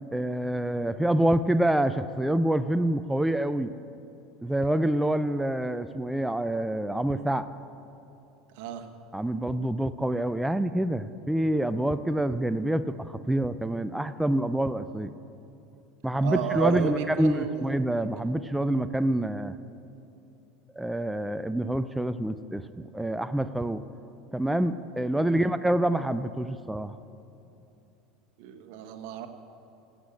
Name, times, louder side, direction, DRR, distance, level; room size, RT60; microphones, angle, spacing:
voice 1, 0.1-3.7 4.4-7.5 9.1-15.1 16.0-19.6 20.8-23.8 24.3-27.0, right 1 dB, 5° right, 11 dB, 0.4 m, -27 dB
voice 2, 8.5-8.9 16.2-17.7 25.2-25.5 28.4-29.3, right 8 dB, 70° right, 7 dB, 1.3 m, -32 dB
15.0 x 8.2 x 8.4 m, 2.7 s
supercardioid pair, 110°, 0 cm